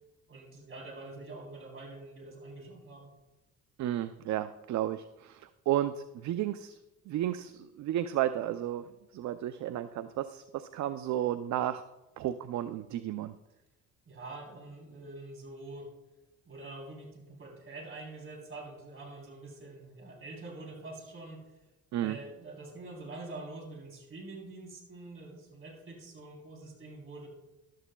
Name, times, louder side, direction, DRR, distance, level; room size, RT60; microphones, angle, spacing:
voice 1, 0.3-3.1 14.1-15.9 16.5-21.4 22.0-27.3, right 2 dB, 45° right, 0 dB, 3.5 m, -45 dB
voice 2, 3.8-6.8 7.1-8.8 9.1-11.8 12.2-13.3 21.9-22.2, right 12 dB, 70° right, 11 dB, 0.5 m, -33 dB
14.0 x 12.0 x 2.3 m, 1.0 s
cardioid pair, 90°, 30 cm